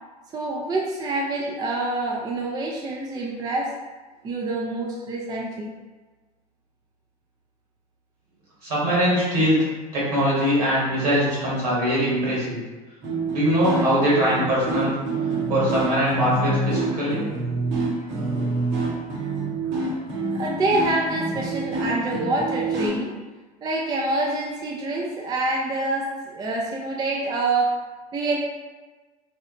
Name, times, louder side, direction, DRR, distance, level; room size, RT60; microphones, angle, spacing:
voice 1, 0.3-3.7 4.2-5.7 20.3-23.1 23.6-27.8 28.1-28.4, right 2 dB, 20° right, -2 dB, 0.4 m, -26 dB
voice 2, 8.6-9.6 9.9-12.6 13.3-15.0 15.5-17.3, equal, 75° right, -7 dB, 1.3 m, -22 dB
sound 1, 13.0-22.9, right 2 dB, 50° right, 0.8 m, -27 dB
2.9 x 2.0 x 2.4 m, 1.3 s
hypercardioid pair, 75°, 20 cm